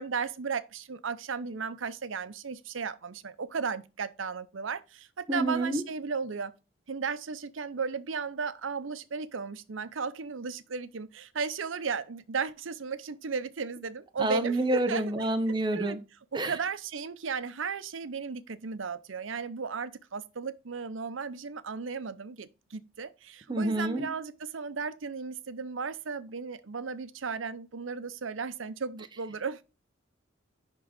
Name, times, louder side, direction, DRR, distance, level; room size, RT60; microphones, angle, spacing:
voice 1, 0.0-6.5 6.9-15.3 15.7-16.0 16.3-29.6, right 5 dB, 85° right, 0.7 m, -35 dB
voice 2, 5.3-5.8 14.2-16.0 16.3-16.5 23.5-24.1, right 1 dB, 25° right, 0.9 m, -28 dB
10.5 x 3.8 x 5.1 m
head